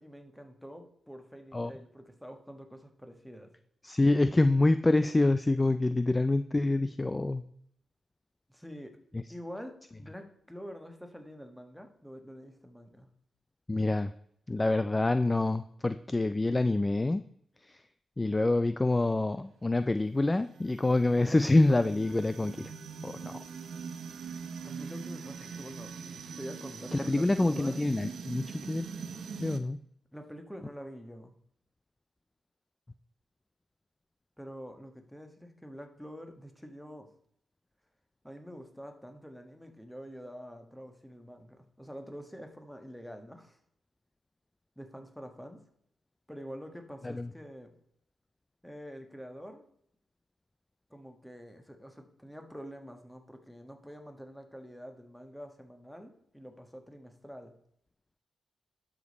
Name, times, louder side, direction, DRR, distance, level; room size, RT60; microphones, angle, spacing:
voice 1, 0.0-3.5 8.5-9.0 9.3-13.1 24.6-27.8 30.1-31.3 34.4-37.1 38.2-43.6 44.8-45.6 46.3-47.8 48.6-49.7 50.9-57.5, equal, ahead, 5 dB, 1.3 m, -46 dB
voice 2, 3.8-7.4 9.1-9.2 13.7-14.1 14.5-17.2 17.6-17.8 18.2-22.7 23.0-23.4 26.9-28.9 29.4-29.8 47.0-47.3, left 2 dB, 20° left, 12 dB, 0.3 m, -26 dB
sound 1, 19.8-29.6, right 6 dB, 75° right, 0.7 m, -43 dB
12.0 x 5.1 x 4.1 m, 0.71 s
cardioid pair, 85°, 0 cm